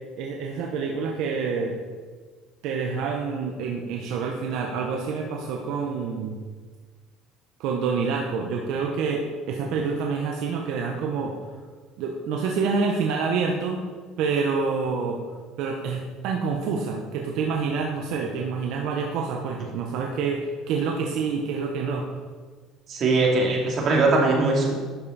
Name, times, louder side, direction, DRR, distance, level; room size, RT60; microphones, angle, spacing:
voice 1, 0.2-1.7 2.6-6.4 7.6-11.4 12.0-13.8 14.2-15.2 15.6-22.1, right 5 dB, 75° right, 1 dB, 0.9 m, -27 dB
voice 2, 22.9-24.7, right 3 dB, 50° right, -1 dB, 2.5 m, -21 dB
11.5 x 5.6 x 4.1 m, 1.5 s
supercardioid pair, 95°, 0 cm